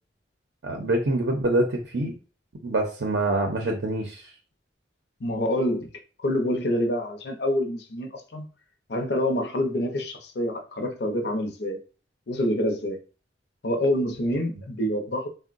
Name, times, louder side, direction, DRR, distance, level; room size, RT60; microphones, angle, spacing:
voice 1, 0.6-2.1 2.6-4.3, right 2 dB, 65° right, 2 dB, 0.5 m, -25 dB
voice 2, 5.2-5.9 6.2-8.5 8.9-11.8 12.3-13.0 13.6-15.3, left 1 dB, 60° left, 4 dB, 0.6 m, -26 dB
3.7 x 2.1 x 2.4 m, 0.36 s
head